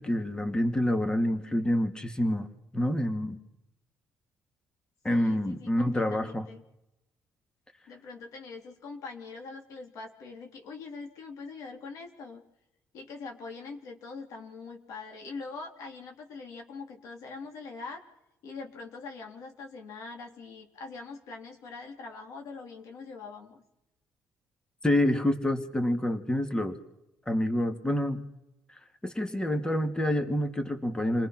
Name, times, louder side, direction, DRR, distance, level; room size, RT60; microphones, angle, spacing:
voice 1, 0.0-2.5 2.7-3.4 5.0-6.5 24.8-26.8 27.3-28.2 29.0-31.3, left 1 dB, 15° left, 6 dB, 2.6 m, -27 dB
voice 2, 5.1-6.6 7.9-12.4 12.9-18.0 18.4-23.6, left 4 dB, 75° left, 3 dB, 3.8 m, -43 dB
29.5 x 20.0 x 6.2 m, 0.87 s
supercardioid pair, 70°, 6 cm